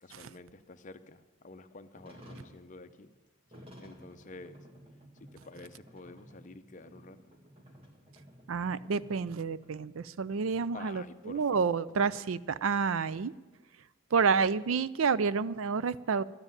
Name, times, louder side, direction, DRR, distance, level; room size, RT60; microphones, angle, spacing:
voice 1, 0.0-3.1 3.8-4.6 5.2-7.2 10.7-12.2, left 3 dB, 40° left, 0.7 m, -50 dB
sound 1, 2.0-10.4 10.6-10.7 11.2-11.3 11.7-13.3, equal, 30° right, 2.0 m, -54 dB
voice 2, 8.5-13.3 14.1-16.2, right 5 dB, 75° right, 0.5 m, -29 dB
12.0 x 9.8 x 9.2 m
head